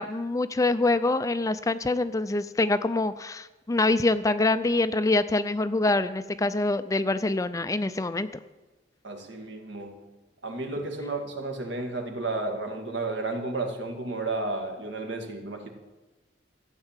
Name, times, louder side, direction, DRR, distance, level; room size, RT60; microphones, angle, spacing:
voice 1, 0.0-8.3, left 2 dB, 20° left, 12 dB, 0.4 m, -25 dB
voice 2, 9.0-10.0 10.4-15.7, right 2 dB, 70° right, 4 dB, 2.0 m, -32 dB
14.0 x 9.0 x 7.3 m, 1.2 s
head